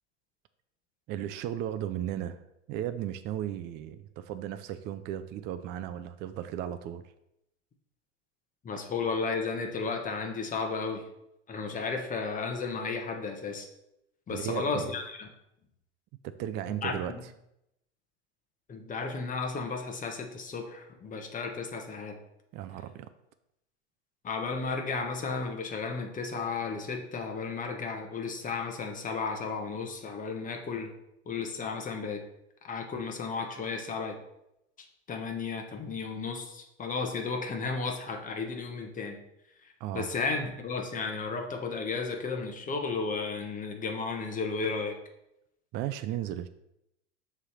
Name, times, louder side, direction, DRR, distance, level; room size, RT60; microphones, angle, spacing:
voice 1, 1.1-2.4 2.7-7.0 14.3-14.9 16.2-17.2 22.5-23.1 39.8-40.1 45.7-46.5, right 11 dB, 30° right, 10 dB, 0.4 m, -35 dB
voice 2, 8.6-11.0 11.5-13.7 14.3-15.3 16.8-16.9 18.7-22.2 24.2-30.9 31.3-32.2 32.6-34.2 35.1-39.2 39.9-45.0, left 4 dB, 20° left, 4 dB, 1.2 m, -33 dB
6.8 x 3.4 x 5.7 m, 0.84 s
hypercardioid pair, 95°, 36 cm